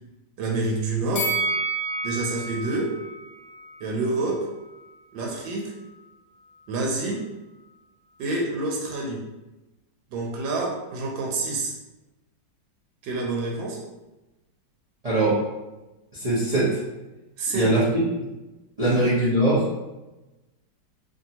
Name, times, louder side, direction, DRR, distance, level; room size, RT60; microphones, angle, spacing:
voice 1, 0.4-1.3 2.0-2.9 3.8-4.5 5.1-5.7 6.7-7.3 8.2-9.2 10.1-11.7 13.0-13.8 17.4-17.7 18.8-19.1, right 2 dB, 90° right, -1 dB, 1.4 m, -27 dB
Bell, 1.2-4.3 4.7-4.8, right 2 dB, 70° left, 0.8 m, -30 dB
voice 2, 15.0-15.4 16.2-16.8 17.5-17.8 18.8-19.6, right 1 dB, 65° right, -10 dB, 0.3 m, -21 dB
3.0 x 2.7 x 2.8 m, 1.0 s
omnidirectional pair, 2.0 m